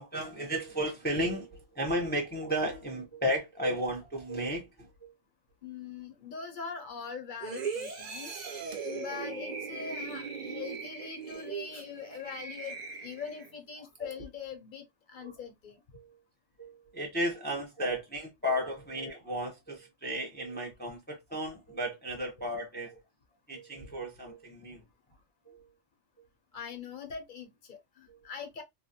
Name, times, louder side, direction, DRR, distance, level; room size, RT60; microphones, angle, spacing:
voice 1, 0.0-5.1 8.9-9.0 11.3-11.4 14.0-14.1 15.2-15.3 15.9-16.2 16.6-23.0 23.5-24.8 25.5-25.7 28.1-28.2, equal, 10° left, 0.6 m, -34 dB
voice 2, 5.6-8.3 8.8-15.8 26.5-28.6, left 6 dB, 50° left, 0.7 m, -42 dB
sound 1, 7.4-13.5 14.0-14.1, right 5 dB, 45° right, 0.6 m, -39 dB
3.3 x 2.1 x 2.7 m
omnidirectional pair, 1.2 m